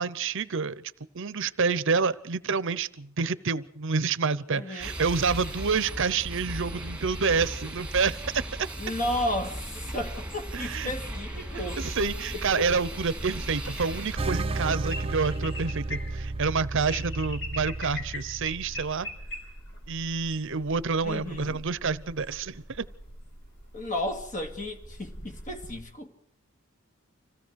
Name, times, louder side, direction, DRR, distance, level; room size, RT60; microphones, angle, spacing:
voice 1, 0.0-8.4 10.5-10.9 11.8-19.1 19.9-22.9, right 5 dB, 60° right, 0.8 m, -28 dB
voice 2, 4.5-4.9 8.8-11.8 12.3-12.7 21.0-21.6 23.7-26.1, left 1 dB, 40° left, 2.5 m, -33 dB
sound 1, 4.8-14.2, right 1 dB, 5° right, 2.2 m, -37 dB
sound 2, 9.5-25.8, left 1 dB, 60° left, 6.3 m, -43 dB
sound 3, 14.2-19.0, right 2 dB, 30° right, 0.8 m, -33 dB
26.5 x 16.5 x 6.4 m
head